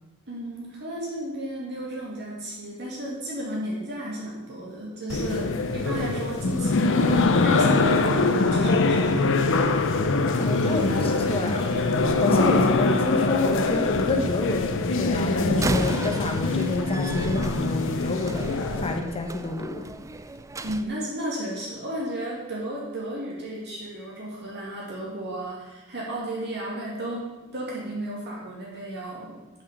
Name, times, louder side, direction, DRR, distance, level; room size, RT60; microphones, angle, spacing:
voice 1, 0.3-9.3 20.6-29.4, right 1 dB, 50° right, -4 dB, 2.0 m, -33 dB
sound 1, 5.1-19.0, left 3 dB, 60° left, 0.7 m, -23 dB
sound 2, 10.3-15.9, left 1 dB, 80° left, 2.0 m, -44 dB
voice 2, 10.4-11.6 12.2-19.9, left 2 dB, 25° left, 3 dB, 1.1 m, -28 dB
Slam, 15.5-20.9, right 2 dB, 15° right, 0.3 m, -34 dB
7.4 x 5.8 x 6.6 m, 1.2 s
head